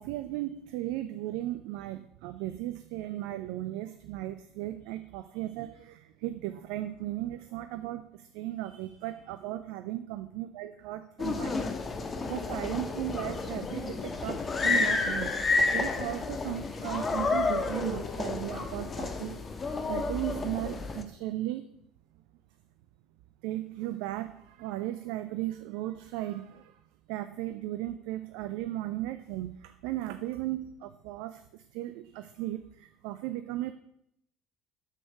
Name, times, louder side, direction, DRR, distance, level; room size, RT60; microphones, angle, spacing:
voice 1, 0.0-11.6 12.0-19.3 19.9-21.7 23.4-26.8 27.1-33.7, right 15 dB, 65° right, 10 dB, 0.5 m, -36 dB
sound 1, 11.2-21.0, left 3 dB, 30° left, 1.4 m, -30 dB
8.3 x 6.6 x 6.6 m, 0.74 s
figure-of-eight pair, 60°, 0 cm